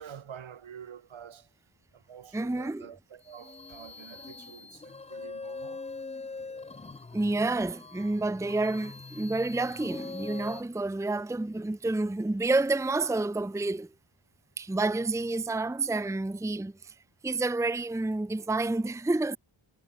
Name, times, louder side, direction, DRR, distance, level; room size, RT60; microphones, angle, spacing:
voice 1, 0.0-1.5 1.9-5.9, right 8 dB, 75° right, 3.2 m, -48 dB
voice 2, 2.3-2.9 7.1-13.9 14.6-16.9 17.2-19.4, right 2 dB, 5° right, 0.8 m, -29 dB
sound 1, 3.3-10.6, left 3 dB, 15° left, 0.4 m, -43 dB
wide cardioid pair, 170°, 48 cm